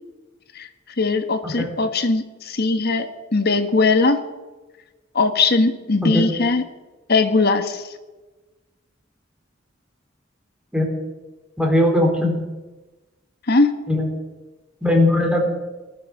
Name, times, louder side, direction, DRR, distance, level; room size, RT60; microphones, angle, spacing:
voice 1, 1.0-4.2 5.1-6.6 7.1-7.8 13.5-13.7, left 3 dB, 55° left, 8 dB, 1.4 m, -19 dB
voice 2, 11.6-12.4 13.9-14.1 14.8-15.5, left 1 dB, 5° right, 0 dB, 3.9 m, -19 dB
19.5 x 13.0 x 4.9 m, 1.2 s
head